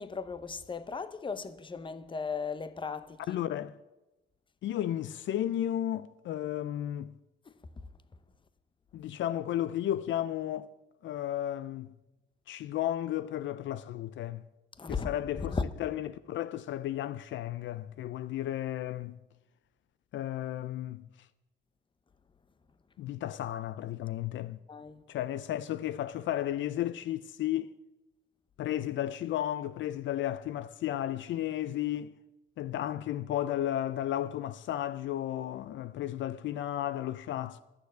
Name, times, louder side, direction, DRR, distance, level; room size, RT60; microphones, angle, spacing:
voice 1, 0.0-3.4 14.8-15.1 15.4-15.6 24.7-25.0, left 5 dB, 25° left, 0.8 m, -36 dB
voice 2, 3.3-3.7 4.6-7.1 8.9-10.7 11.0-11.9 12.5-14.4 14.9-19.2 20.1-21.1 23.0-24.6 25.1-27.7 28.6-32.1 32.6-37.6, left 12 dB, 70° left, 0.5 m, -33 dB
11.5 x 6.6 x 8.2 m
cardioid pair, 90°, 20 cm